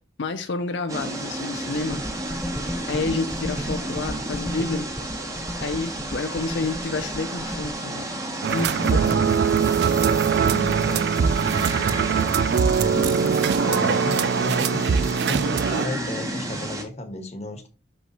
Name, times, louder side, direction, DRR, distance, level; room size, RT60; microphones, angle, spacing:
voice 1, 0.2-2.1 2.9-4.9 5.6-8.1 8.5-9.4, left 3 dB, 75° left, 0.6 m, -29 dB
sound 1, 0.9-16.8, right 1 dB, 20° right, 1.2 m, -32 dB
sound 2, 1.8-7.7, equal, ahead, 0.4 m, -34 dB
sound 3, 8.4-15.9, right 6 dB, 60° right, 0.3 m, -22 dB
voice 2, 10.4-11.1 11.5-12.2 13.6-17.7, left 1 dB, 35° left, 1.3 m, -34 dB
6.2 x 5.4 x 3.0 m
head